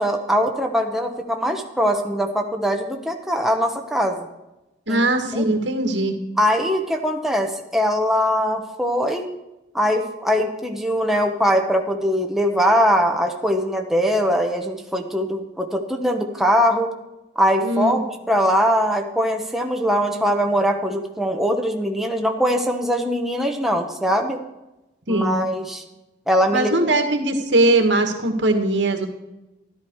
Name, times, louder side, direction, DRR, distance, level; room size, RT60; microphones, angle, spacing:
voice 1, 0.0-4.3 4.9-5.0 5.3-5.4 6.4-9.3 9.7-16.9 17.4-24.4 25.1-25.8 26.3-26.9, equal, ahead, 2 dB, 1.1 m, -21 dB
voice 2, 4.9-6.2 17.6-18.0 25.1-25.4 26.5-29.1, right 2 dB, 85° right, 5 dB, 1.9 m, -20 dB
13.0 x 12.0 x 4.8 m, 0.98 s
head